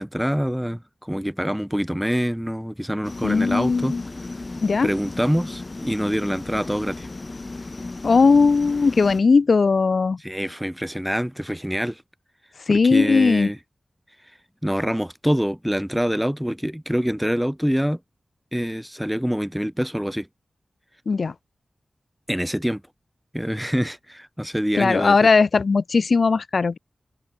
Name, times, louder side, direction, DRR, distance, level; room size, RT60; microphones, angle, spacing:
voice 1, 0.0-3.9 4.8-7.1 10.2-12.0 12.7-13.6 14.6-18.0 18.5-20.3 22.3-22.8 23.3-25.2, equal, 5° right, 1.2 m, -25 dB
sound 1, 3.0-9.2, left 2 dB, 40° left, 6.0 m, -35 dB
voice 2, 3.2-4.0 4.6-4.9 8.0-10.2 12.7-13.5 21.1-21.3 24.7-26.8, left 4 dB, 70° left, 0.7 m, -18 dB
cardioid pair, 55°, 0 cm